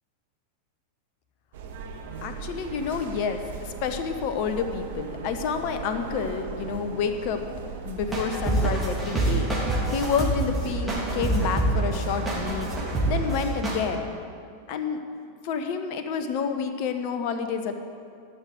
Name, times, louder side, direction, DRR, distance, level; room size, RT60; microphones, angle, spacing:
sound 1, 1.5-13.5, right 5 dB, 55° right, 1.1 m, -37 dB
voice 1, 2.2-7.4 7.8-9.5 9.9-12.7 13.1-14.1 14.7-15.0 15.4-17.8, left 6 dB, 45° left, 7 dB, 1.0 m, -29 dB
sound 2, 8.0-13.8, right 2 dB, 5° right, 3.2 m, -27 dB
12.5 x 6.7 x 8.0 m, 2.3 s
figure-of-eight pair, 90°, 0 cm